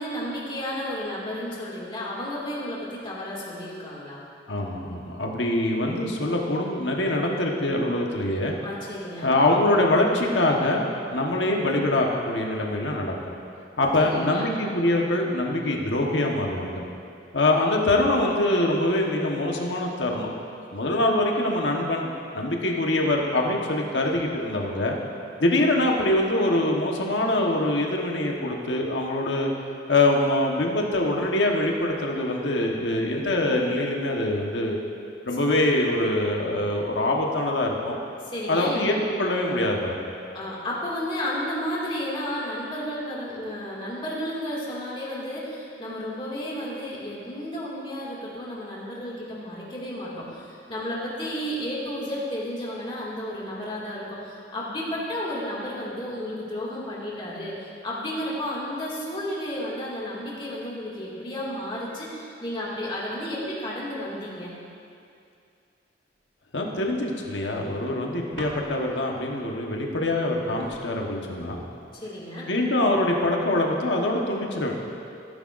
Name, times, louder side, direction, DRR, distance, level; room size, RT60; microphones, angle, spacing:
voice 1, 0.0-4.2 8.6-9.3 14.0-14.5 35.3-35.4 38.2-38.8 40.3-64.5 71.9-72.5, equal, 30° left, -6 dB, 2.3 m, -32 dB
voice 2, 4.5-8.5 9.2-10.8 11.1-13.1 13.8-16.9 17.3-20.3 20.7-25.0 25.4-29.5 29.9-34.8 35.2-38.0 38.5-39.9 66.5-71.6 72.5-74.7, left 1 dB, 80° left, 0 dB, 1.3 m, -24 dB
sound 1, 68.4-69.1 70.2-70.3 70.6-72.1 72.8-73.3, right 1 dB, 70° right, 1.5 m, -43 dB
16.0 x 10.0 x 2.6 m, 2.5 s
head